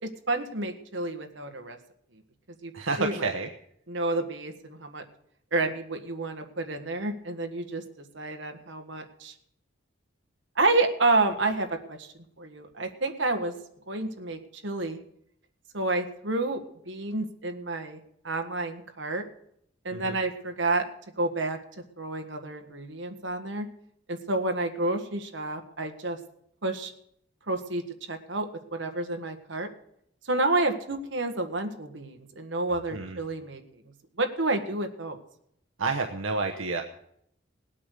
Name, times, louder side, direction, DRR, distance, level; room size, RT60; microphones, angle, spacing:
voice 1, 0.0-1.8 2.6-2.7 3.0-3.3 3.9-5.0 5.5-7.8 8.1-9.3 10.6-12.1 12.4-13.5 13.9-15.0 15.7-16.6 16.9-18.0 18.2-19.2 19.8-20.8 21.2-21.6 22.0-23.7 24.1-26.2 26.6-26.9 27.5-27.8 28.1-29.7 30.2-33.6 34.2-35.2, right 2 dB, 65° right, 6 dB, 1.7 m, -29 dB
voice 2, 2.7-3.5 19.9-20.2 32.9-33.2 35.8-36.8, right 3 dB, 85° right, 3 dB, 1.0 m, -29 dB
18.5 x 8.6 x 6.7 m, 0.71 s
head